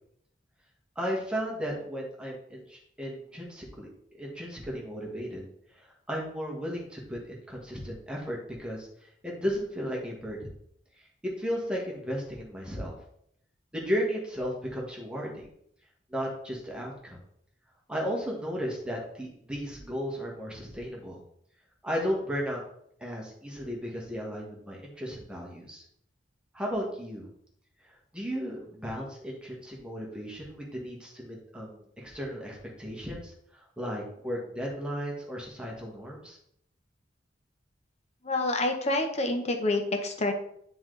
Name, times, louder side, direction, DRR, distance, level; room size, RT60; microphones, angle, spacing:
voice 1, 0.9-3.9 4.1-5.5 5.7-10.5 11.0-12.9 13.7-15.5 16.1-17.2 17.9-21.2 21.8-22.6 23.0-25.8 26.5-27.3 27.8-36.4, equal, 5° right, -3 dB, 1.5 m, -35 dB
voice 2, 38.2-40.3, left 2 dB, 35° left, 4 dB, 0.9 m, -27 dB
10.0 x 3.9 x 3.3 m, 0.69 s
head